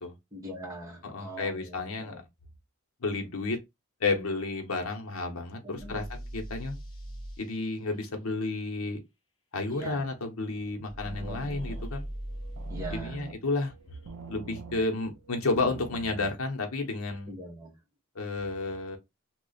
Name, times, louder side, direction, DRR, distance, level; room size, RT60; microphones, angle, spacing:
voice 1, 0.3-2.2 5.6-6.0 9.7-10.0 11.2-11.5 12.7-13.2 17.3-17.7, right 1 dB, 15° right, 1.2 m, -42 dB
voice 2, 1.0-2.2 3.0-3.6 4.0-6.7 7.4-9.0 9.5-12.1 12.9-13.7 14.3-17.3 18.1-19.0, left 3 dB, 75° left, 0.9 m, -31 dB
sound 1, 5.8-7.4 10.9-13.0, right 1 dB, 20° left, 0.8 m, -39 dB
sound 2, 10.5-16.3, right 5 dB, 75° right, 0.5 m, -46 dB
3.1 x 2.4 x 4.0 m
head